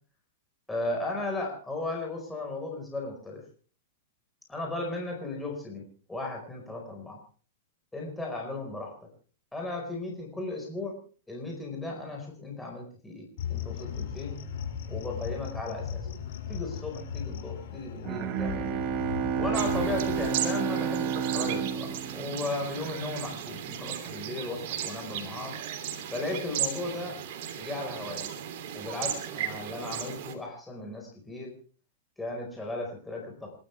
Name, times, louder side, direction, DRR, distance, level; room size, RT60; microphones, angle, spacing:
voice 1, 0.7-3.4 4.5-7.2 7.9-8.9 9.5-11.0 11.3-14.4 14.9-16.2 16.5-18.8 19.4-25.5 26.1-27.2 27.6-28.3 28.7-31.5 32.2-33.5, left 2 dB, 5° left, 0 dB, 4.8 m, -36 dB
sound 1, 13.4-20.3, left 8 dB, 60° left, 6.0 m, -37 dB
Bowed string instrument, 18.0-23.0, right 8 dB, 35° right, 1.5 m, -30 dB
sound 2, 19.5-30.3, right 10 dB, 55° right, 3.0 m, -36 dB
27.5 x 13.0 x 3.4 m, 0.40 s
hypercardioid pair, 140°, 0 cm